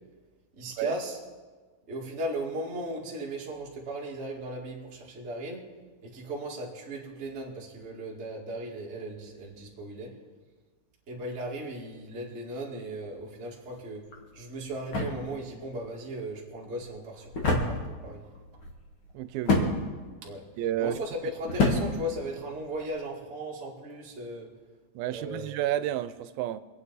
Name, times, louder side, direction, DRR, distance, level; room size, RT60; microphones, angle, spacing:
voice 1, 0.6-1.2 1.9-5.7 6.0-10.1 11.1-14.1 14.3-18.2 20.2-20.5 20.8-24.5 25.1-25.5, right 1 dB, 25° right, 1.6 m, -37 dB
sound 1, 14.1-22.9, left 3 dB, 45° left, 2.1 m, -31 dB
voice 2, 19.1-19.8 20.6-21.0 25.0-26.6, right 13 dB, 85° right, 2.3 m, -31 dB
26.0 x 8.7 x 4.1 m
omnidirectional pair, 4.2 m